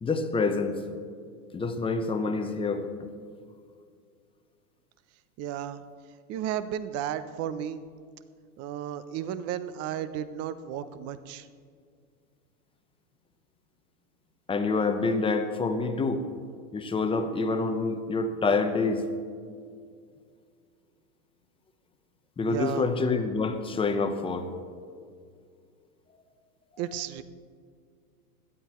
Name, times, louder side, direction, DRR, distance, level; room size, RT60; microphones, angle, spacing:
voice 1, 0.0-0.8 1.5-2.9 14.5-16.2 16.7-19.0 22.4-24.5, left 3 dB, 10° left, 7 dB, 0.8 m, -27 dB
voice 2, 5.4-5.8 6.3-7.8 8.6-11.5 22.4-22.9 26.8-27.2, right 10 dB, 35° right, 14 dB, 0.7 m, -33 dB
17.5 x 12.5 x 3.1 m, 2.2 s
hypercardioid pair, 120°, 46 cm